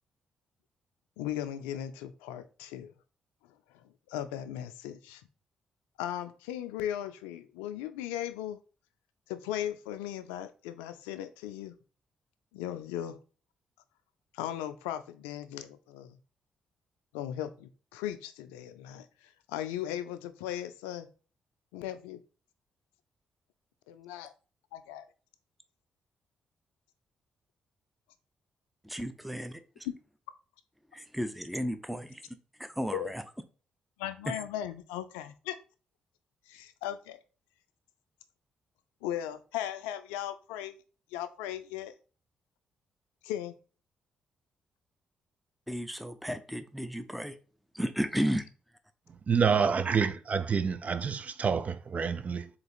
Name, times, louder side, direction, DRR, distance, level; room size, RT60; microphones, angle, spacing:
voice 1, 1.2-2.9 4.1-5.2 6.0-8.6 9.3-11.7 12.5-13.2 14.3-16.2 17.1-19.0 19.5-21.1 21.7-22.2 23.9-24.3 24.7-25.0 32.9-33.1 34.0-35.6 36.5-37.2 39.0-40.8 41.1-41.9 43.2-43.5, left 11 dB, 90° left, 0.4 m, -37 dB
voice 2, 28.8-29.9 30.9-33.2 34.2-34.4 45.7-47.4 47.7-48.5, equal, ahead, 0.6 m, -34 dB
voice 3, 49.3-52.5, right 6 dB, 45° right, 0.5 m, -28 dB
3.8 x 2.8 x 4.1 m
hypercardioid pair, 50°, 3 cm